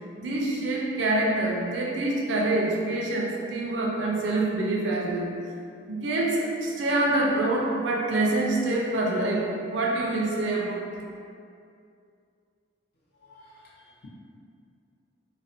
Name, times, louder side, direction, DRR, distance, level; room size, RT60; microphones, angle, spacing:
voice 1, 0.2-5.3 5.9-10.9, right 2 dB, 65° right, -2 dB, 0.4 m, -26 dB
voice 2, 13.1-14.1, left 2 dB, 55° left, -4 dB, 0.5 m, -53 dB
2.5 x 2.0 x 2.4 m, 2.4 s
head